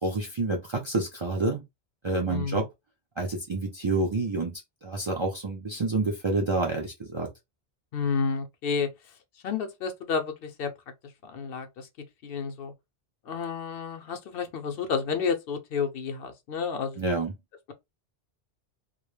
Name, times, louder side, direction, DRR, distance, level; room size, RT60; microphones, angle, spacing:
voice 1, 0.0-1.6 2.0-2.7 3.2-7.3 17.0-17.3, right 3 dB, 45° right, 0.4 m, -28 dB
voice 2, 2.3-2.6 7.9-8.9 9.4-10.7 11.2-11.9 12.2-12.7 13.3-17.0, left 5 dB, 70° left, 0.8 m, -30 dB
2.3 x 2.0 x 3.0 m
omnidirectional pair, 1.1 m